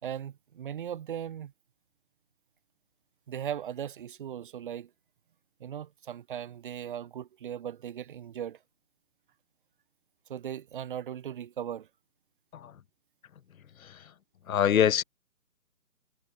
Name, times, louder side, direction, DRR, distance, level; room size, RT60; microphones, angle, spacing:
voice 1, 0.0-1.5 3.3-4.9 5.6-8.6 10.3-11.9, right 9 dB, 35° right, 2.2 m, -38 dB
voice 2, 13.8-14.1 14.5-15.0, left 9 dB, 65° left, 0.7 m, -25 dB
figure-of-eight pair, 150°, 46 cm